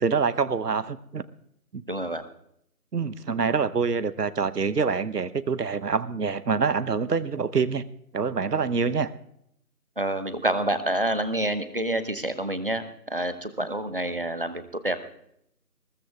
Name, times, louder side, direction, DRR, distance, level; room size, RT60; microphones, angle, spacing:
voice 1, 0.0-1.2 1.7-1.8 2.9-7.8 8.1-9.1, right 5 dB, 75° right, 17 dB, 0.9 m, -26 dB
voice 2, 1.9-2.2 10.0-15.0, right 1 dB, 35° right, 11 dB, 0.8 m, -28 dB
21.5 x 20.0 x 2.3 m, 0.75 s
figure-of-eight pair, 165°, 48 cm